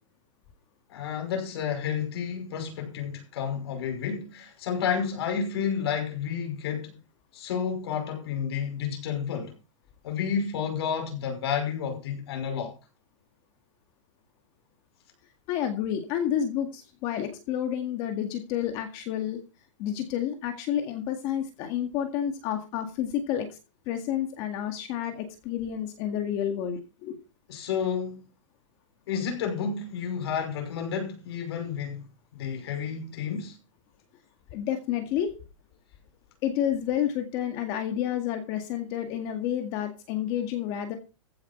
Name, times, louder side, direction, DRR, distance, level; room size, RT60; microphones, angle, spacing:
voice 1, 0.9-7.0 7.3-9.5 10.0-12.7 27.5-28.2 29.1-32.0 32.3-33.6, left 7 dB, 50° left, 5.8 m, -31 dB
voice 2, 15.5-19.4 19.8-23.6 23.9-27.2 34.5-35.3 36.4-41.0, left 10 dB, 25° left, 1.9 m, -30 dB
15.0 x 9.7 x 4.5 m
supercardioid pair, 175°, 17 cm